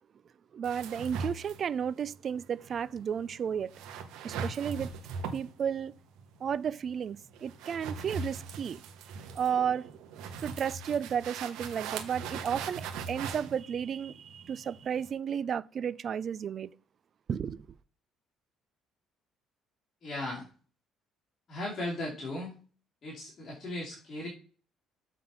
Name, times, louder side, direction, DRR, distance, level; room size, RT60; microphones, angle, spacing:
voice 1, 0.5-3.8 4.2-4.9 5.3-5.9 6.4-8.8 9.3-9.9 10.4-16.7 17.3-17.7, right 8 dB, 40° right, 0.4 m, -33 dB
sound 1, 0.6-15.1, right 5 dB, 85° right, 1.3 m, -41 dB
voice 2, 20.0-20.5 21.5-22.6 23.0-24.3, left 1 dB, 35° left, 2.7 m, -37 dB
7.5 x 4.1 x 5.5 m
cardioid pair, 145°, 0 cm